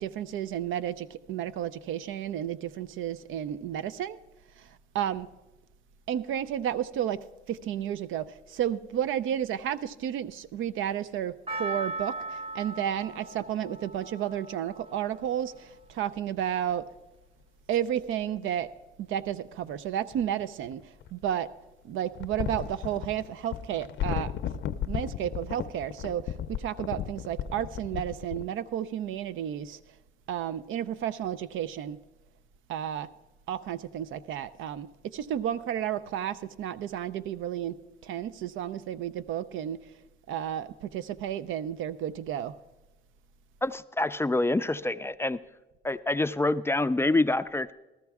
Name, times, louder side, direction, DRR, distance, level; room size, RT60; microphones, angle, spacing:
voice 1, 0.0-4.2 4.6-5.3 6.1-16.9 17.7-18.7 19.0-21.5 21.8-24.3 24.8-29.8 30.3-32.0 32.7-33.1 33.5-37.8 38.0-39.8 40.3-42.5, right 10 dB, 80° right, 0.5 m, -32 dB
Percussion, 11.5-15.8 16.1-16.2, right 2 dB, 30° right, 0.8 m, -39 dB
sound 1, 17.8-17.9 20.1-21.3 22.1-28.4, left 9 dB, 65° left, 0.5 m, -35 dB
voice 2, 43.6-45.4 45.8-47.7, left 2 dB, 10° left, 0.3 m, -26 dB
14.0 x 13.5 x 3.5 m
cardioid pair, 90°, 20 cm